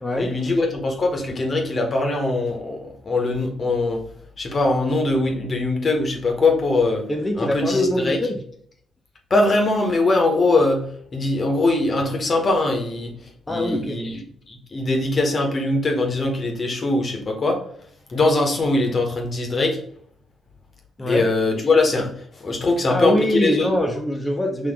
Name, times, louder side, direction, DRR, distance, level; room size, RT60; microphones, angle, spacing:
voice 1, 0.2-4.0 4.4-7.0 7.4-8.2 9.3-13.1 13.5-14.2 14.5-17.7 18.1-19.8 21.1-23.7, left 2 dB, 45° left, 2 dB, 1.2 m, -21 dB
voice 2, 7.1-8.4 13.5-14.0 21.0-21.2 22.9-24.7, left 1 dB, 20° left, 0 dB, 1.0 m, -23 dB
4.3 x 2.9 x 3.6 m, 0.63 s
hypercardioid pair, 40°, 0 cm